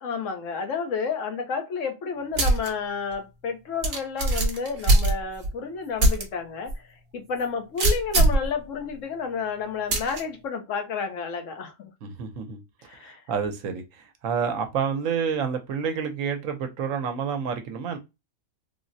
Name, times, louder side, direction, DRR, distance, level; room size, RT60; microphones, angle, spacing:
voice 1, 0.0-6.9 7.1-11.9 12.8-13.2, left 5 dB, 70° left, 1.1 m, -31 dB
sound 1, 2.4-2.7 3.1-3.2 3.8-5.5 6.0-6.2 6.7-6.8 7.8-8.5 9.9-10.2, right 2 dB, 55° right, 0.9 m, -21 dB
voice 2, 12.0-18.0, right 6 dB, 75° right, 1.0 m, -29 dB
3.5 x 2.0 x 2.6 m
omnidirectional pair, 1.4 m